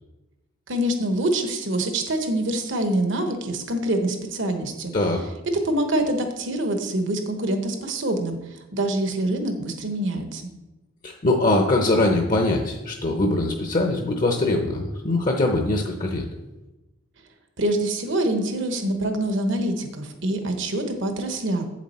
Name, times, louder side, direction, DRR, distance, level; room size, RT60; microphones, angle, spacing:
voice 1, 0.7-4.9 5.5-10.5 17.6-21.6, right 1 dB, 65° right, 6 dB, 1.1 m, -25 dB
voice 2, 4.9-5.3 11.0-16.3, left 2 dB, 40° left, 3 dB, 0.7 m, -22 dB
8.2 x 7.4 x 4.3 m, 1.0 s
head